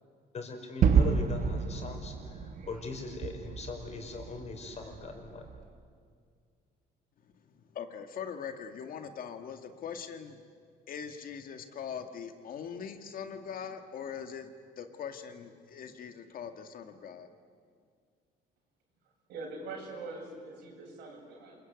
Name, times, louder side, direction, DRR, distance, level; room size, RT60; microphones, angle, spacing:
voice 1, 0.3-5.4, left 4 dB, 40° left, 3 dB, 5.3 m, -40 dB
Gunshot gunfire / Fireworks / Boom, 0.8-5.6, right 6 dB, 55° right, 1.6 m, -30 dB
voice 2, 7.7-10.4 10.9-17.3, left 7 dB, 55° left, 7 dB, 2.1 m, -41 dB
voice 3, 19.3-21.6, right 3 dB, 85° right, 0 dB, 7.9 m, -43 dB
27.5 x 22.0 x 9.5 m, 2.1 s
cardioid pair, 110°, 17 cm